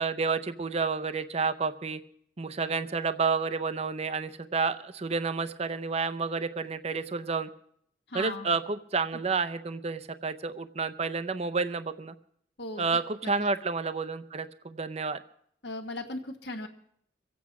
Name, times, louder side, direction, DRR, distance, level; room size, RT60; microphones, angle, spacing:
voice 1, 0.0-2.0 2.4-7.5 8.1-12.1 12.8-15.2, right 4 dB, 35° right, 12 dB, 0.6 m, -30 dB
voice 2, 8.1-8.5 12.6-12.9 13.2-13.5 15.6-16.7, left 2 dB, 65° left, 4 dB, 1.5 m, -37 dB
23.5 x 8.5 x 5.9 m, 0.68 s
head